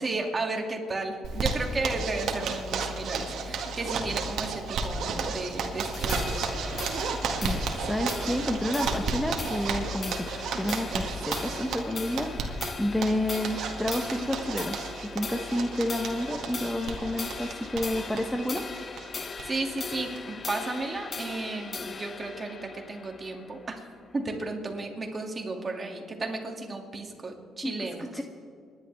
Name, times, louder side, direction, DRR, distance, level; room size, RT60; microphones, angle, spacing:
voice 1, 0.0-6.5 19.4-23.8 24.1-28.1, right 3 dB, 30° right, 2 dB, 2.4 m, -34 dB
Zipper (clothing), 1.2-19.4 19.7-19.8 20.2-20.3 20.6-21.0, right 4 dB, 70° right, 1.8 m, -33 dB
sound 1, 5.8-24.4, left 4 dB, 35° left, 0.8 m, -40 dB
voice 2, 7.4-10.3 10.5-18.7 27.6-27.7 28.1-28.2, left 1 dB, 5° left, 5 dB, 0.9 m, -30 dB
27.0 x 11.0 x 3.5 m, 2.3 s
cardioid pair, 90°, 0 cm